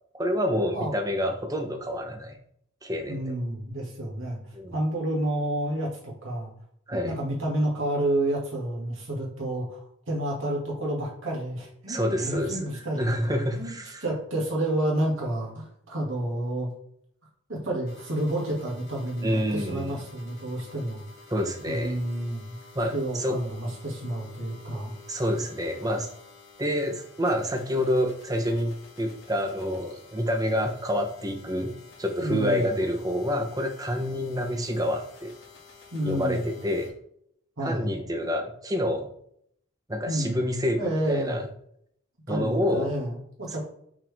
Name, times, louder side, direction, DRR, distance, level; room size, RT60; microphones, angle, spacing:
voice 1, 0.1-2.4 2.8-3.2 4.5-4.7 6.9-7.1 11.9-12.6 13.0-14.0 19.2-20.0 21.3-22.0 22.7-23.4 25.1-26.1 26.6-31.7 32.0-35.3 36.0-36.9 37.6-39.1 39.9-41.4 42.3-42.9, equal, 15° right, 4 dB, 0.8 m, -28 dB
voice 2, 3.1-4.4 4.7-6.5 7.0-13.7 14.0-16.7 17.5-21.0 21.6-22.6 22.9-24.9 32.2-32.7 35.9-36.5 37.6-37.9 40.1-40.4 40.7-41.4 42.3-43.6, right 1 dB, 70° right, -3 dB, 2.3 m, -30 dB
sound 1, 17.8-36.9, left 4 dB, 50° left, 2.3 m, -51 dB
6.0 x 4.5 x 3.5 m, 0.69 s
head